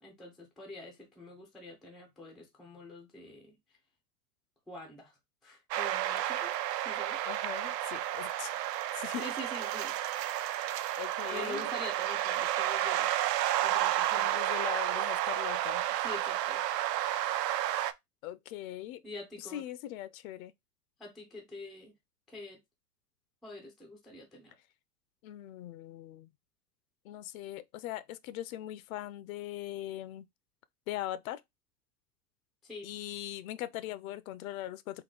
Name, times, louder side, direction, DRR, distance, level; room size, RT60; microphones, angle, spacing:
voice 1, 0.0-3.5 4.7-5.2 5.4-7.2 9.2-9.9 11.2-13.1 13.6-14.4 16.0-16.6 19.0-19.6 21.0-21.9 22.3-22.6 23.4-24.5 32.6-32.9, left 1 dB, ahead, 0.3 m, -45 dB
sound 1, 5.7-17.9, right 13 dB, 80° right, 0.6 m, -31 dB
voice 2, 7.3-8.6 8.9-9.2 11.0-11.7 14.1-15.8 18.2-19.0 19.4-20.5 25.2-26.3 27.0-30.3 30.9-31.4 32.8-35.0, left 13 dB, 60° left, 0.5 m, -40 dB
3.8 x 2.2 x 3.8 m
hypercardioid pair, 115°, 48 cm